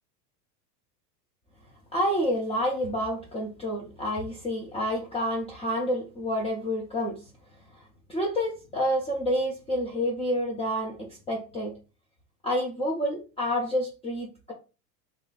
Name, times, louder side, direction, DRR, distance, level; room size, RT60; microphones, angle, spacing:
voice 1, 1.9-7.2 8.1-11.7 12.4-14.5, equal, 10° left, 0.6 m, -28 dB
2.4 x 2.3 x 4.0 m
hypercardioid pair, 105°, 49 cm